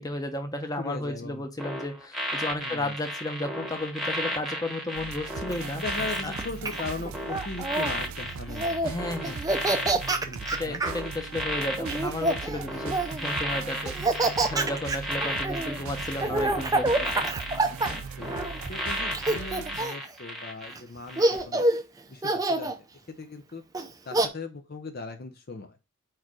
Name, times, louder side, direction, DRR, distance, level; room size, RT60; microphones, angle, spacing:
voice 1, 0.0-5.8 6.2-6.3 8.8-9.4 10.5-17.3, left 1 dB, 15° left, 6 dB, 0.8 m, -33 dB
voice 2, 0.8-1.4 2.6-2.9 5.8-8.9 9.2-9.3 9.7-9.8 10.1-10.8 16.2-16.4 18.2-18.3 18.7-21.6 22.1-22.7 23.2-23.6 24.1-25.7, left 3 dB, 45° left, 7 dB, 0.6 m, -38 dB
sound 1, 1.6-20.7 21.1-21.4, equal, ahead, 1.2 m, -34 dB
sound 2, 5.0-19.8, right 6 dB, 70° right, 0.4 m, -40 dB
Laughter, 5.5-7.9 8.5-8.9 9.2-11.0 11.8-13.3 13.8-18.7 19.1-20.1 20.7-20.8 21.2-21.8 22.2-22.8 23.7-24.3, right 2 dB, 15° right, 0.5 m, -27 dB
4.7 x 4.7 x 6.0 m, 0.29 s
head